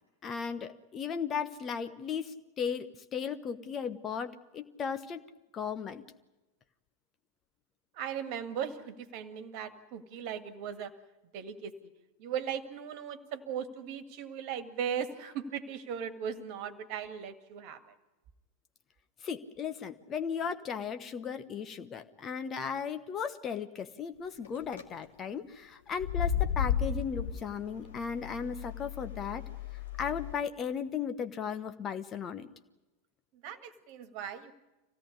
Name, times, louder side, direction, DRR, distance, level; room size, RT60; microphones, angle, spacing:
voice 1, 0.2-5.2 5.5-6.1 19.2-29.4 30.0-32.5, left 6 dB, 25° left, 10 dB, 1.1 m, -36 dB
voice 2, 7.9-10.9 11.3-11.9 12.2-17.8 33.4-34.5, right 8 dB, 45° right, 12 dB, 1.8 m, -38 dB
sound 1, 24.4-24.8 25.9-30.3, left 8 dB, 65° left, 2.2 m, -34 dB
25.0 x 17.0 x 9.8 m, 1.1 s
figure-of-eight pair, 90°, 0 cm